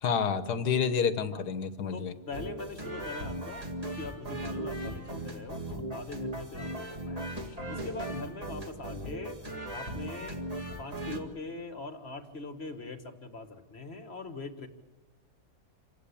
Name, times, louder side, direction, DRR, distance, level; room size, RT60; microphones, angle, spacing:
voice 1, 0.0-2.1, left 6 dB, 85° left, 11 dB, 1.7 m, -29 dB
voice 2, 1.9-7.2 7.7-9.4 9.7-10.5 10.8-14.7, left 3 dB, 40° left, 8 dB, 1.7 m, -42 dB
sound 1, 2.3-11.2, right 1 dB, 25° right, 2.1 m, -38 dB
27.5 x 16.0 x 8.6 m, 1.2 s
omnidirectional pair, 1.7 m